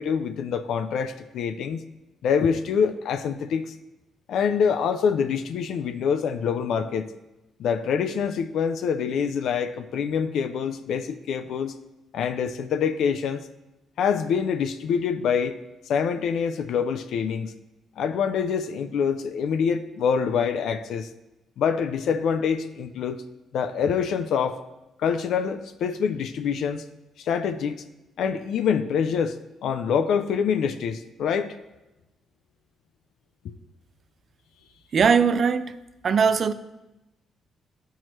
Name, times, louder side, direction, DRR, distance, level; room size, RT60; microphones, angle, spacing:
voice 1, 0.0-1.8 2.2-3.7 4.3-7.1 7.6-11.7 12.1-13.4 14.0-15.6 15.9-17.5 18.0-21.1 21.6-23.2 23.5-24.6 25.0-26.8 27.2-27.8 28.2-29.4 29.6-31.6 33.4-33.5, left 7 dB, 75° left, 0.4 m, -25 dB
voice 2, 34.9-35.7 36.0-36.5, right 6 dB, 50° right, 0.4 m, -20 dB
12.0 x 4.6 x 3.0 m
cardioid pair, 90°, 0 cm